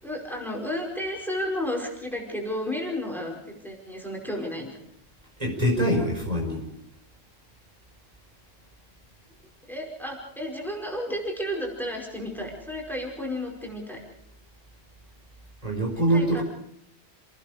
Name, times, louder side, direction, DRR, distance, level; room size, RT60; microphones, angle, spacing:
voice 1, 0.0-4.7 9.6-14.0 16.1-16.4, left 1 dB, ahead, 0 dB, 5.1 m, -32 dB
voice 2, 5.4-6.7 15.6-16.4, right 1 dB, 35° right, 0 dB, 5.3 m, -24 dB
28.5 x 19.5 x 5.0 m, 0.73 s
omnidirectional pair, 1.1 m